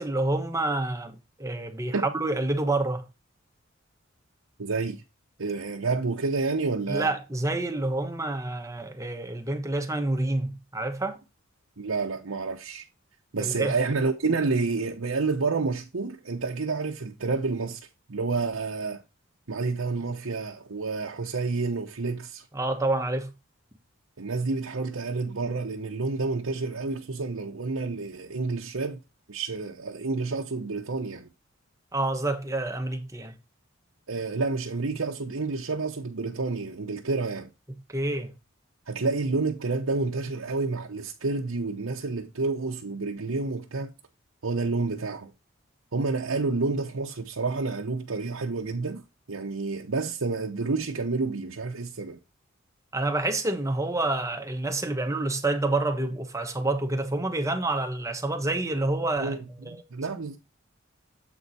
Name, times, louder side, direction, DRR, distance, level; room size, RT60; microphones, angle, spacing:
voice 1, 0.0-3.1 6.9-11.2 13.4-13.7 22.5-23.3 31.9-33.4 37.9-38.3 52.9-59.4 59.6-59.8, right 2 dB, 15° right, 1.1 m, -28 dB
voice 2, 4.6-5.0 5.4-7.1 11.8-12.9 13.3-17.8 18.1-19.0 19.5-22.4 24.2-29.0 29.3-31.3 34.1-37.5 38.9-43.9 44.4-45.3 45.9-49.0 49.3-52.2 59.2-60.4, right 3 dB, 85° right, 0.9 m, -29 dB
7.9 x 4.6 x 4.1 m
head